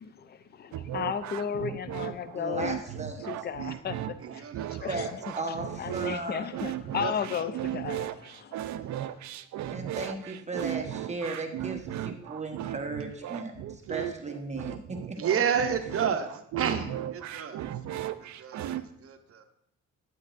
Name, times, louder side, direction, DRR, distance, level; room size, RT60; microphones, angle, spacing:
voice 1, 0.0-0.4 0.9-2.8 3.2-4.4 4.7-5.2 5.8-8.5, left 7 dB, 35° left, 13 dB, 0.5 m, -34 dB
sound 1, 0.7-18.8, right 12 dB, 65° right, 0.5 m, -36 dB
voice 2, 2.3-3.3 4.9-6.5 9.7-15.2, right 2 dB, 25° right, 3 dB, 1.1 m, -36 dB
voice 3, 4.2-4.9 7.0-7.1 15.2-16.3 16.6-17.6 18.4-19.4, right 7 dB, 50° right, 7 dB, 0.8 m, -30 dB
9.1 x 8.2 x 2.5 m, 0.73 s
cardioid pair, 90°, 30 cm